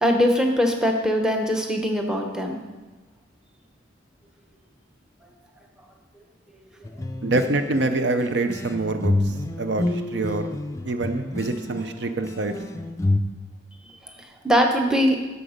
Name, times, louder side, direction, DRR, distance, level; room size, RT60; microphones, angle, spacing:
voice 1, 0.0-2.6 14.0-15.2, equal, 5° right, 3 dB, 0.8 m, -22 dB
sound 1, 6.8-13.2, left 2 dB, 15° left, 0.4 m, -28 dB
voice 2, 7.2-9.1 9.6-10.5 10.8-12.5, right 2 dB, 65° right, 8 dB, 0.6 m, -25 dB
9.2 x 7.0 x 5.1 m, 1.2 s
head